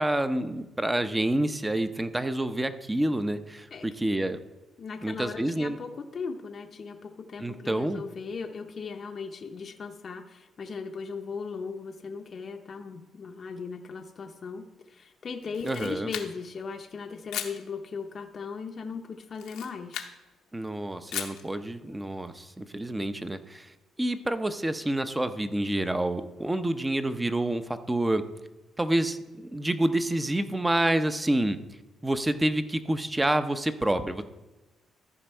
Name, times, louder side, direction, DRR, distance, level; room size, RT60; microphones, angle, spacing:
voice 1, 0.0-4.4 5.0-5.8 7.4-8.0 15.6-16.1 20.5-28.2 28.8-31.6 32.0-34.2, right 1 dB, 15° right, 10 dB, 0.7 m, -28 dB
voice 2, 4.8-20.0, left 5 dB, 50° left, 3 dB, 0.6 m, -38 dB
Camera, 15.4-16.6 17.3-17.6 19.3-20.2 21.1-21.5, left 9 dB, 85° left, 0.8 m, -37 dB
14.0 x 5.1 x 4.5 m, 1.1 s
cardioid pair, 90°, 0 cm